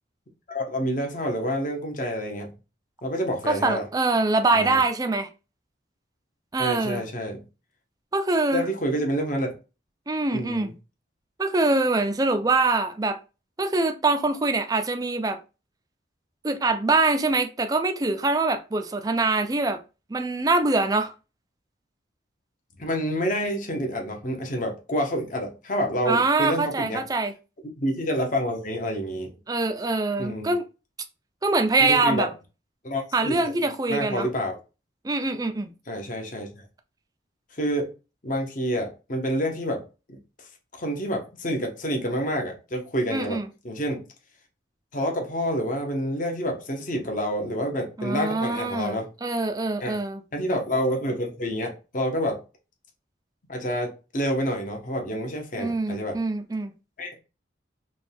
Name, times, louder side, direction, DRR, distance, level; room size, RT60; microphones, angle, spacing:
voice 1, 0.5-2.5 3.0-3.8 4.5-4.8 6.6-7.4 8.5-9.5 10.3-10.7 22.8-27.0 27.8-29.3 30.2-30.5 31.8-32.3 32.8-34.6 35.9-36.5 37.6-37.9 38.2-39.8 40.1-40.2 40.7-43.4 43.6-44.0 44.9-49.1 49.8-50.0 50.3-52.4 53.5-56.2 57.0-57.1, equal, 45° left, 0.9 m, -28 dB
voice 2, 3.5-5.3 6.5-7.0 8.1-8.7 10.1-10.7 11.4-13.2 13.6-15.4 16.4-19.8 20.1-21.1 26.1-27.3 29.5-30.6 31.4-32.3 33.1-34.3 35.0-35.7 43.1-43.4 48.0-50.2 55.6-56.7, right 3 dB, 20° right, 0.4 m, -24 dB
5.1 x 2.3 x 3.4 m
head